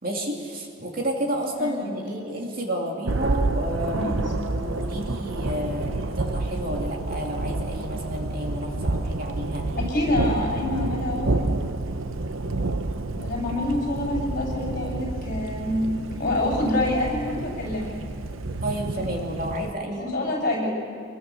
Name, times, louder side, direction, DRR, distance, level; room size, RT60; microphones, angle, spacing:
voice 1, 0.0-4.1 4.4-9.6 18.6-20.1, equal, 40° right, 0 dB, 2.6 m, -31 dB
voice 2, 1.6-2.0 3.9-4.2 9.8-11.4 13.1-15.9 16.2-17.9 20.0-20.8, left 1 dB, 40° left, -3 dB, 7.5 m, -26 dB
Thunder, 3.1-19.7, right 2 dB, 75° right, 0.9 m, -29 dB
24.5 x 21.5 x 6.9 m, 2.3 s
head